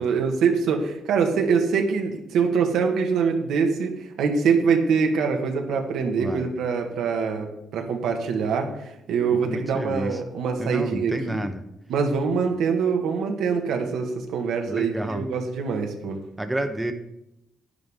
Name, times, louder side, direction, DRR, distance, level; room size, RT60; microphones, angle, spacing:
voice 1, 0.0-11.4 11.9-16.2, right 5 dB, 80° right, 4 dB, 1.7 m, -24 dB
voice 2, 6.2-6.5 9.3-10.2 10.6-11.6 14.7-15.2 16.4-16.9, right 1 dB, 10° right, 7 dB, 1.0 m, -30 dB
10.5 x 9.7 x 3.7 m, 0.83 s
cardioid pair, 90°, 0 cm